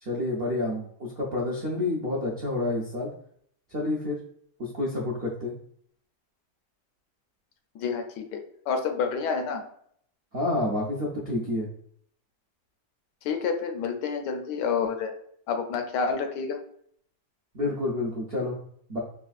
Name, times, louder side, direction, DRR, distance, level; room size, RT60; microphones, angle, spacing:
voice 1, 0.0-3.1 3.7-4.2 4.6-5.5 10.3-11.7 17.5-18.6 18.9-19.0, left 2 dB, 70° right, -4 dB, 0.5 m, -29 dB
voice 2, 7.7-8.4 8.7-9.6 13.2-15.1 15.5-16.6, left 5 dB, 80° left, 5 dB, 1.2 m, -28 dB
4.1 x 2.4 x 2.4 m, 0.65 s
omnidirectional pair, 1.8 m